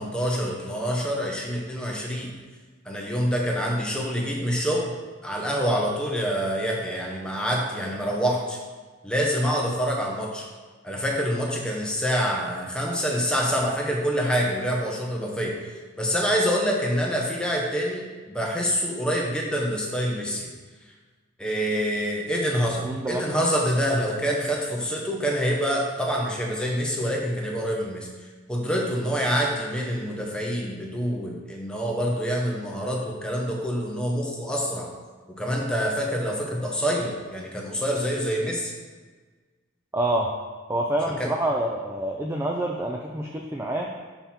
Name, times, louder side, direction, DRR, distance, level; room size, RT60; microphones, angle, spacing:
voice 1, 0.0-2.3 2.8-4.9 5.2-8.6 9.0-10.5 10.8-15.7 16.0-20.5 21.4-28.1 28.5-34.9 35.4-38.7 41.2-41.3, equal, 5° left, -2 dB, 0.9 m, -26 dB
voice 2, 22.8-23.2 39.9-40.3 40.7-43.9, right 1 dB, 10° right, 1 dB, 0.4 m, -27 dB
5.8 x 5.6 x 4.3 m, 1.4 s
head